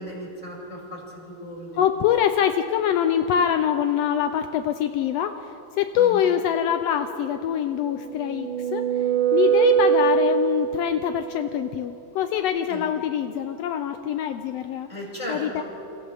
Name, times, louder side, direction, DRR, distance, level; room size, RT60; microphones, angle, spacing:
voice 1, 0.0-1.8 6.0-6.3 12.7-12.9 14.9-15.6, equal, 10° left, -4 dB, 5.7 m, -36 dB
voice 2, 1.7-5.4 5.8-8.8 9.3-14.9 15.3-15.6, left 9 dB, 80° left, 7 dB, 1.5 m, -24 dB
sound 1, 7.9-10.9, right 8 dB, 75° right, 3.9 m, -22 dB
29.5 x 28.0 x 3.6 m, 2.9 s
omnidirectional pair, 3.7 m